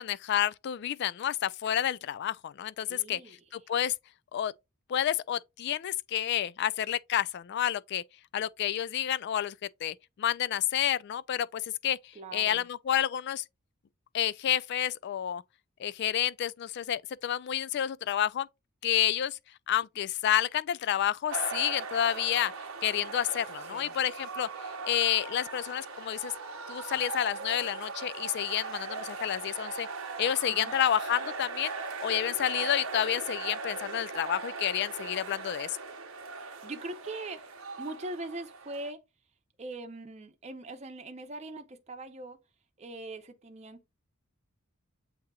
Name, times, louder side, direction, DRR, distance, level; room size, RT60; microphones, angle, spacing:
voice 1, 0.0-3.2 3.5-3.9 4.3-4.5 4.9-8.0 8.3-9.5 9.8-12.0 12.3-13.4 14.1-15.4 15.8-18.5 18.8-19.4 19.7-22.5 22.8-24.5 24.8-26.3 26.7-29.9 30.2-31.7 32.0-35.8, left 10 dB, 55° left, 0.3 m, -29 dB
voice 2, 2.9-3.4 12.1-12.7 23.7-23.9 30.5-30.7 36.4-37.4 37.8-39.0 39.6-42.4 42.8-43.9, right 2 dB, 30° right, 0.7 m, -41 dB
sound 1, 21.3-38.9, right 4 dB, 80° right, 0.8 m, -39 dB
7.9 x 2.8 x 2.3 m
head